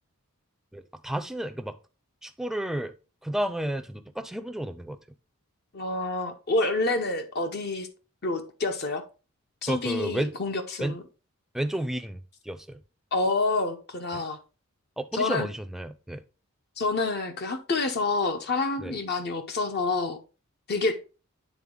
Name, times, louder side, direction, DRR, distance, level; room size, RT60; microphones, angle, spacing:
voice 1, 0.7-1.8 2.2-2.9 3.2-5.0 9.6-10.3 10.8-11.0 11.5-12.8 14.1-14.2 15.0-16.2 18.8-19.0, right 1 dB, ahead, 0.4 m, -32 dB
voice 2, 5.7-7.9 8.2-9.0 9.6-11.0 13.1-14.4 15.1-15.5 16.8-20.2 20.7-21.0, left 3 dB, 50° left, 0.8 m, -28 dB
9.2 x 3.8 x 3.7 m
head